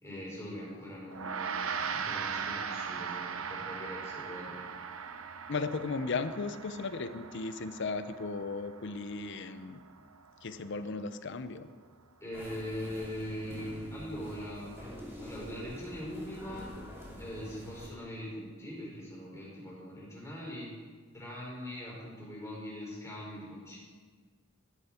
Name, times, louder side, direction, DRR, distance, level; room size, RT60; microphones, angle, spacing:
voice 1, 0.0-4.6 12.2-15.0 15.2-16.7 17.2-20.7 21.1-23.8, equal, 15° left, -5 dB, 4.2 m, -42 dB
Gong, 1.1-10.7, right 6 dB, 75° right, 0.8 m, -39 dB
voice 2, 5.5-9.8 10.4-11.7, left 4 dB, 60° left, 11 dB, 0.6 m, -36 dB
sound 1, 12.3-17.9, equal, 10° right, 2.6 m, -46 dB
13.0 x 10.5 x 4.4 m, 1.6 s
head